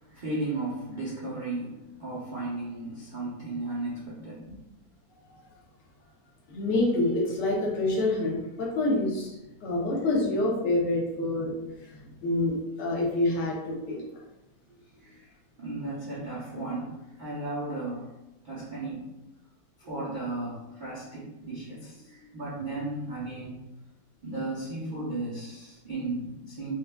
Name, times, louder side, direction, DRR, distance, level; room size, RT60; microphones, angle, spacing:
voice 1, 0.0-4.5 14.7-15.3 15.6-18.1 18.4-19.1 19.8-23.6 24.2-26.7, right 2 dB, 80° right, -9 dB, 0.4 m, -35 dB
voice 2, 6.5-9.3 9.6-11.5 11.8-14.0, left 2 dB, 70° left, -3 dB, 1.4 m, -27 dB
4.8 x 2.2 x 2.2 m, 0.97 s
omnidirectional pair, 2.0 m